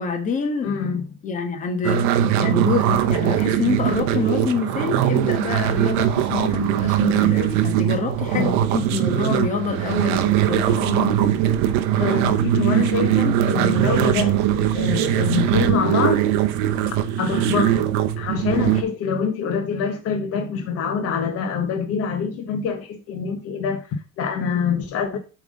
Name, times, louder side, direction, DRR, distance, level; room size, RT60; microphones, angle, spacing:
voice 1, 0.0-0.7 1.2-11.2, left 5 dB, 25° left, 1.2 m, -26 dB
voice 2, 0.6-1.0 8.3-8.5 12.0-16.3 17.2-17.9 18.2-25.2, left 6 dB, 50° left, 1.0 m, -25 dB
sound 1, 1.8-18.8, right 11 dB, 65° right, 0.8 m, -21 dB
7.3 x 3.5 x 5.2 m
cardioid pair, 160°, 32 cm